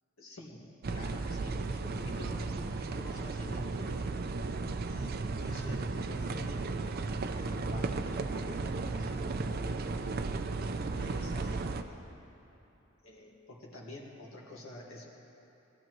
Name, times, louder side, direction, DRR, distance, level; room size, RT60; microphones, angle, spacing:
voice 1, 0.2-4.1 4.9-6.7 7.3-10.4 11.0-12.1 13.0-15.2, left 1 dB, 75° left, -2 dB, 1.8 m, -48 dB
sound 1, 0.8-11.8, right 3 dB, 45° right, 0.5 m, -35 dB
20.0 x 13.0 x 3.1 m, 2.9 s
head